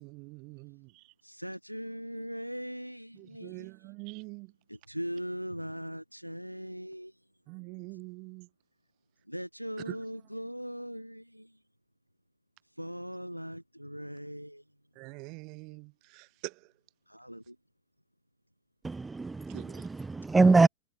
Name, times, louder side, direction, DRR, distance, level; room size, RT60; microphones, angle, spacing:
voice 1, 0.0-1.1 3.1-4.5 7.5-8.5 9.9-10.0 14.9-16.7 19.5-19.9, right 30 dB, 45° right, 1.7 m, -45 dB
voice 2, 1.2-3.7 4.7-7.1 9.3-11.6 12.8-14.6 17.1-17.6 20.4-20.7, equal, 90° right, 2.6 m, -40 dB
voice 3, 18.8-20.7, right 3 dB, 10° right, 0.5 m, -24 dB
figure-of-eight pair, 90°, 0 cm